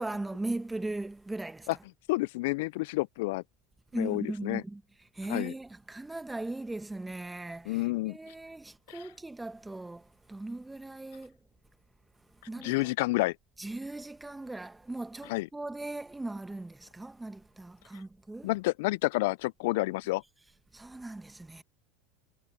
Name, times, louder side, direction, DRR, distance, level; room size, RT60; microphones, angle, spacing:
voice 1, 0.0-1.7 3.9-4.8 5.1-11.4 12.5-12.9 13.6-18.5 20.7-21.6, right 2 dB, 10° right, 1.2 m, -38 dB
voice 2, 2.1-3.4 3.9-4.6 5.3-5.5 7.7-8.2 8.9-9.0 12.6-13.4 15.3-15.5 18.4-20.2, left 21 dB, 70° left, 0.4 m, -29 dB
hypercardioid pair, 80°, 0 cm